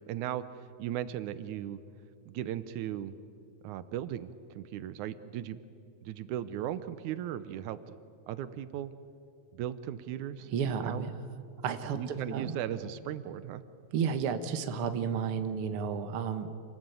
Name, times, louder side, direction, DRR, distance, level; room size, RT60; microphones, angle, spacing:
voice 1, 0.1-1.8 2.3-3.1 3.6-5.6 6.0-7.9 8.3-8.9 9.5-10.5 10.8-11.1 11.9-13.6, right 11 dB, 85° right, 13 dB, 2.2 m, -37 dB
voice 2, 10.5-11.1 11.6-12.6 13.9-16.5, right 6 dB, 55° right, 8 dB, 1.9 m, -32 dB
27.5 x 20.0 x 9.1 m, 2.6 s
omnidirectional pair, 3.4 m